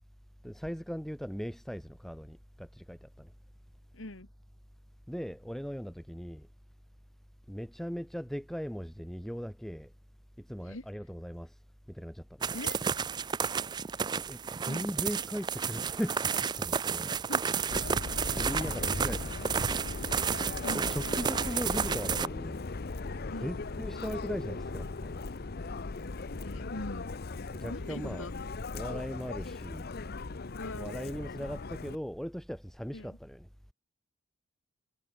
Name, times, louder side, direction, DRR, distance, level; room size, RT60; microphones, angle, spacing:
voice 1, 0.4-3.3 5.1-6.5 7.5-9.9 10.4-11.5 11.9-12.5 14.1-17.1 18.4-19.5 20.9-22.6 23.4-25.2 27.5-28.3 28.7-29.9 30.8-33.4, equal, ahead, 1.7 m, -39 dB
voice 2, 3.9-4.3 10.6-10.9 12.5-12.8 14.7-14.9 17.1-17.4 20.6-20.9 23.3-23.6 26.4-27.1 27.7-28.3 30.5-31.2 32.9-33.2, left 2 dB, 80° left, 2.1 m, -42 dB
sound 1, 12.4-22.3, right 6 dB, 20° right, 0.3 m, -32 dB
Subway metro underground, 17.7-32.0, left 3 dB, 50° left, 0.8 m, -38 dB
head